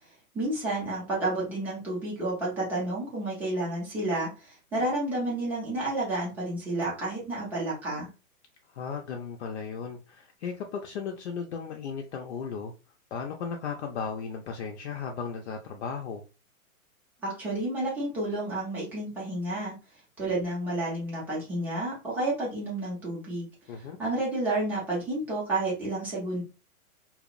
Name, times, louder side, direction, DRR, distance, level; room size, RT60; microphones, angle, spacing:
voice 1, 0.3-8.1 17.2-19.7 20.2-23.5 24.0-26.4, right 2 dB, 5° right, 0.4 m, -30 dB
voice 2, 8.7-12.7 13.1-16.2 23.7-24.0, left 6 dB, 50° left, 0.5 m, -36 dB
2.7 x 2.0 x 2.4 m
hypercardioid pair, 140°, 43 cm